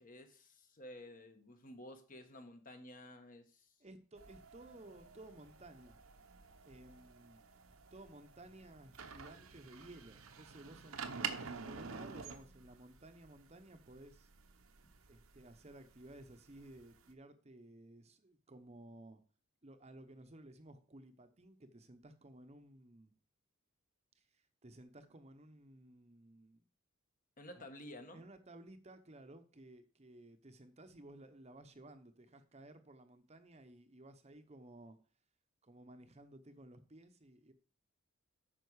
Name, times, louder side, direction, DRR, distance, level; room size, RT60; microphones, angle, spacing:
voice 1, 0.0-3.7 27.4-28.2, left 1 dB, 40° left, 1.3 m, -52 dB
voice 2, 3.8-6.0 6.6-7.4 7.9-14.3 15.1-19.2 19.6-23.1 24.1-26.6 27.6-27.7 28.1-35.0 35.6-37.5, right 1 dB, 30° right, 0.8 m, -56 dB
sound 1, 4.2-17.1, right 6 dB, 80° right, 1.0 m, -49 dB
9.3 x 6.1 x 4.8 m
head